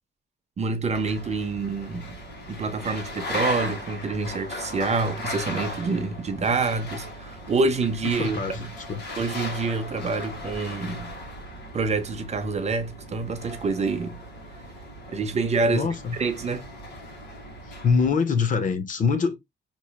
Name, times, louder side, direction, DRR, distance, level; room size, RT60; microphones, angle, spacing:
voice 1, 0.6-2.1 2.5-8.7 9.2-11.1 11.7-14.2 15.1-15.9 16.2-16.6, right 4 dB, 35° right, 0.6 m, -27 dB
sound 1, 0.9-18.1, left 1 dB, 65° left, 1.6 m, -37 dB
voice 2, 8.0-9.0 15.7-16.2 17.8-19.4, left 5 dB, 45° left, 0.6 m, -24 dB
4.4 x 3.0 x 2.3 m
wide cardioid pair, 145°, 19 cm